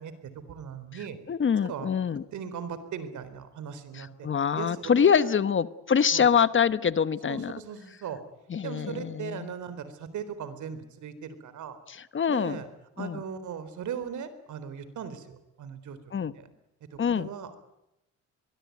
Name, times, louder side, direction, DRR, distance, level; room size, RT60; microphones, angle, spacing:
voice 1, 0.0-1.2 1.6-1.9 2.3-4.3 4.5-5.4 6.1-6.3 7.3-8.2 8.6-11.8 12.3-12.7 13.0-16.4 16.9-17.6, right 7 dB, 75° right, 13 dB, 4.0 m, -38 dB
voice 2, 1.3-2.2 3.9-7.6 8.5-9.5 11.9-12.6 13.0-13.2 16.1-16.3 17.0-17.3, left 7 dB, 40° left, 15 dB, 1.2 m, -25 dB
23.0 x 22.5 x 9.4 m, 0.91 s
cardioid pair, 90°, 30 cm